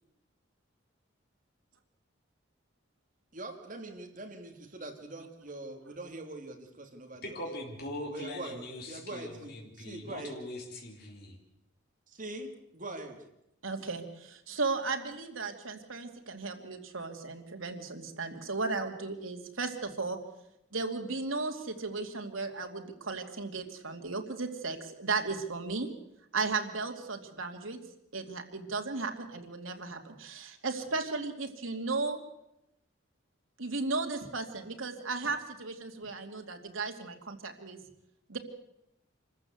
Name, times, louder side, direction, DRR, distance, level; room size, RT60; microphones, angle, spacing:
voice 1, 3.3-7.5 8.1-10.4 12.1-13.2, right 2 dB, 40° right, 3 dB, 2.8 m, -43 dB
voice 2, 7.2-11.4, left 1 dB, 50° left, 0 dB, 3.9 m, -41 dB
voice 3, 13.6-20.2 20.7-25.9 26.3-27.8 28.1-32.2 33.6-37.8 38.3-38.4, right 3 dB, 85° right, 4 dB, 2.6 m, -35 dB
26.5 x 14.5 x 8.0 m, 0.85 s
head